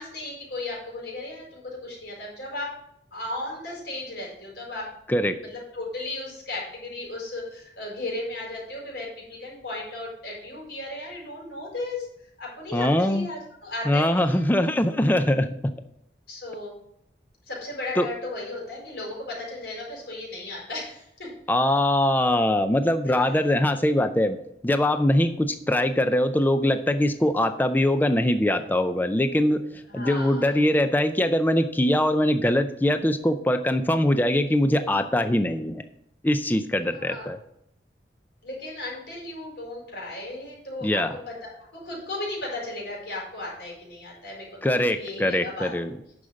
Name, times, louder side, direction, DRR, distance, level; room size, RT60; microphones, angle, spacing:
voice 1, 0.0-2.7 3.1-4.9 5.5-12.1 12.4-14.5 16.3-16.8 17.5-21.3 23.1-23.2 29.9-30.5 36.9-37.3 38.4-45.7, left 2 dB, 70° left, -3 dB, 4.6 m, -35 dB
voice 2, 5.1-5.4 12.7-13.3 13.9-15.7 18.0-18.1 21.5-24.4 24.6-35.8 36.2-37.4 40.8-41.2 44.6-45.9, left 1 dB, 10° left, 9 dB, 0.4 m, -22 dB
9.6 x 6.3 x 5.2 m, 0.76 s
head